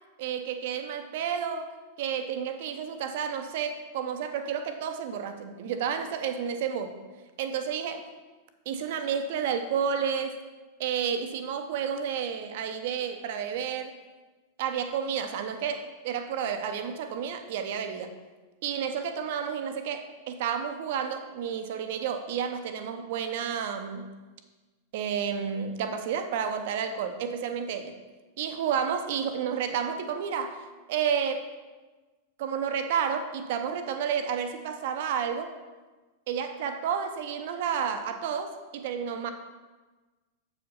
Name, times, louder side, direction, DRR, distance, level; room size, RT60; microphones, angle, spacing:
voice 1, 0.2-7.0 7.4-8.1 8.7-10.4 10.8-14.0 14.6-18.1 18.6-24.1 24.9-28.0 28.4-31.5 32.4-35.5 36.3-39.3, right 7 dB, 50° right, 8 dB, 0.8 m, -31 dB
8.0 x 5.0 x 5.6 m, 1.2 s
figure-of-eight pair, 90°, 0 cm